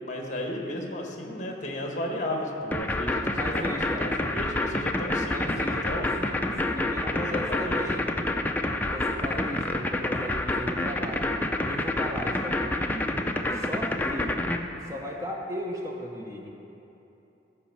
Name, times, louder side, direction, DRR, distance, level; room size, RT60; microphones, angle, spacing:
voice 1, 0.0-3.2 3.5-3.6 4.0-6.1 7.1-7.8, left 1 dB, 40° left, 1 dB, 1.5 m, -34 dB
sound 1, 2.7-14.6, left 2 dB, 10° left, 0.4 m, -27 dB
voice 2, 3.3-4.1 5.2-8.1 8.8-11.3 11.6-13.2 13.5-14.4 14.8-16.5, equal, 15° right, 0 dB, 0.7 m, -36 dB
13.0 x 5.4 x 7.2 m, 3.0 s
head